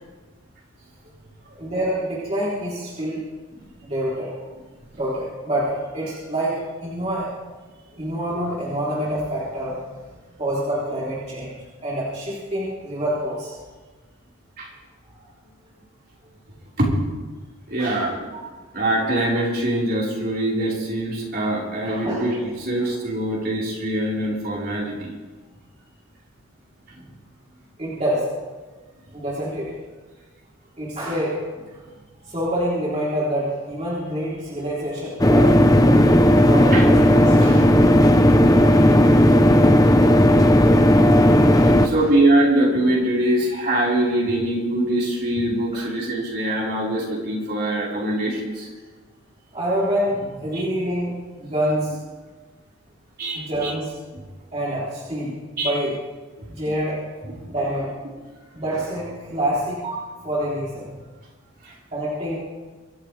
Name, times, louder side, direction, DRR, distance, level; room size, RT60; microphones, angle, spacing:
voice 1, 1.6-3.2 3.8-4.4 4.9-7.3 8.0-9.9 10.4-11.5 11.8-13.5 17.8-18.0 18.3-18.4 22.0-22.2 27.8-28.3 29.1-29.7 30.8-31.4 32.3-37.7 41.9-42.1 45.7-45.9 49.5-51.9 53.3-53.9 54.5-55.3 55.6-55.9 56.5-57.0 57.5-57.9 58.5-60.9 61.9-62.4, right 1 dB, 30° right, -8 dB, 3.7 m, -26 dB
voice 2, 17.7-18.1 18.7-25.1 36.7-36.9 38.1-39.7 40.3-40.4 40.8-40.9 41.6-48.7 50.5-50.6 53.2-53.7 54.1-54.2 55.6-55.7 56.4-56.5 57.3-57.4 61.6-61.7, right 1 dB, 45° right, -5 dB, 4.9 m, -23 dB
sound 1, 35.2-41.9, equal, 15° left, 0.8 m, -14 dB
24.5 x 14.5 x 3.5 m, 1.3 s
head